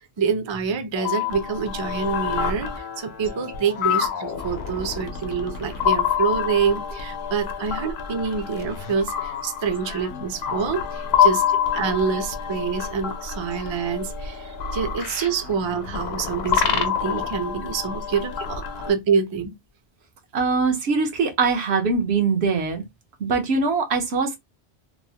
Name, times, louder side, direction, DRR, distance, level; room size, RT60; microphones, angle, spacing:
voice 1, 0.0-2.7 3.0-11.4 11.7-19.5, right 6 dB, 40° right, 0.4 m, -26 dB
sound 1, 0.9-18.9, left 8 dB, 75° left, 0.8 m, -27 dB
voice 2, 20.3-22.8 23.2-24.4, right 4 dB, 85° right, 1.1 m, -22 dB
3.0 x 2.0 x 2.7 m
omnidirectional pair, 1.1 m